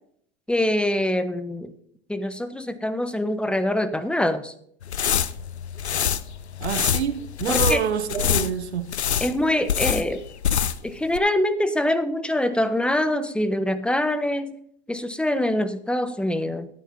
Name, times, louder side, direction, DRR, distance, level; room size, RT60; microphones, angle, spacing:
voice 1, 0.5-1.7 2.1-4.5 7.5-7.8 9.2-10.2 10.8-14.6 14.9-16.7, left 1 dB, 5° left, 1.1 m, -24 dB
sound 1, 4.8-10.9 11.2-11.3, left 8 dB, 90° left, 0.7 m, -25 dB
voice 2, 6.6-9.0, right 7 dB, 85° right, 1.1 m, -27 dB
12.5 x 8.8 x 4.3 m
hypercardioid pair, 90°, 32 cm